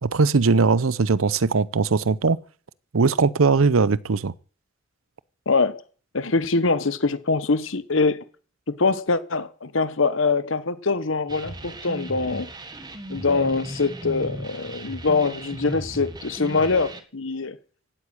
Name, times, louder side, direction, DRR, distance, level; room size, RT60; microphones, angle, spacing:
voice 1, 0.0-2.4 2.9-4.3, right 4 dB, 85° right, 0.7 m, -20 dB
voice 2, 5.5-5.8 6.1-8.2 8.7-12.5 13.1-17.6, left 4 dB, 70° left, 1.1 m, -23 dB
sound 1, 11.3-17.0, right 1 dB, 20° right, 1.5 m, -36 dB
16.0 x 9.7 x 8.9 m
head